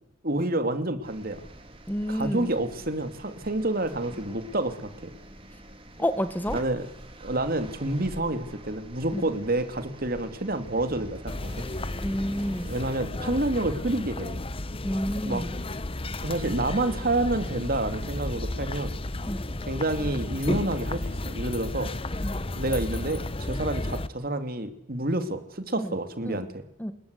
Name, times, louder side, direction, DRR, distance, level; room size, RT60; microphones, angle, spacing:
voice 1, 0.2-1.4 2.1-5.1 6.5-6.9 7.2-11.7 12.6-14.4 15.2-15.5 16.2-18.9 19.7-21.9 22.6-26.6, right 2 dB, 50° right, 9 dB, 2.7 m, -29 dB
sound 1, 1.0-13.0, right 1 dB, 30° right, 3.1 m, -46 dB
voice 2, 1.9-2.5 6.0-6.6 9.1-9.3 12.0-12.7 14.8-15.6 19.3-19.4 22.2-22.4 25.8-26.0 26.3-26.4 26.8-26.9, equal, 10° left, 10 dB, 1.4 m, -29 dB
sound 2, 11.3-24.1, left 2 dB, 30° left, 1.0 m, -33 dB
27.0 x 21.0 x 8.3 m, 0.75 s
head